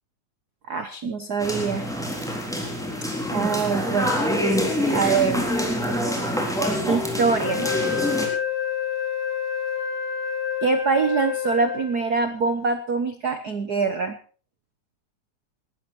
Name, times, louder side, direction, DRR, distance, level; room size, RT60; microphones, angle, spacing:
voice 1, 0.7-1.9 3.3-4.1 4.9-5.5 6.9-7.7 10.6-14.2, right 5 dB, 85° right, 9 dB, 0.8 m, -24 dB
sound 1, 1.4-8.3, equal, ahead, 3.5 m, -26 dB
Wind instrument woodwind instrument, 7.4-12.2, left 8 dB, 75° left, 5.1 m, -28 dB
19.5 x 13.0 x 4.4 m, 0.41 s
omnidirectional pair, 3.4 m